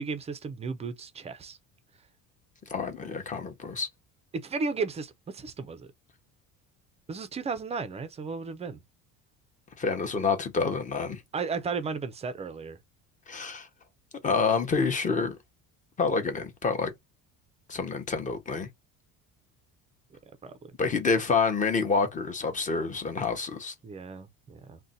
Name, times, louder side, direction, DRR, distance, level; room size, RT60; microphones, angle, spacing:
voice 1, 0.0-1.6 4.3-5.9 7.1-8.8 11.3-12.8 20.1-20.7 23.8-24.8, right 4 dB, 20° right, 0.4 m, -34 dB
voice 2, 2.7-3.9 9.8-11.2 13.3-13.7 14.2-15.4 16.0-16.9 17.7-18.7 20.8-23.7, left 4 dB, 25° left, 0.7 m, -28 dB
2.5 x 2.2 x 3.9 m
cardioid pair, 130°, 34 cm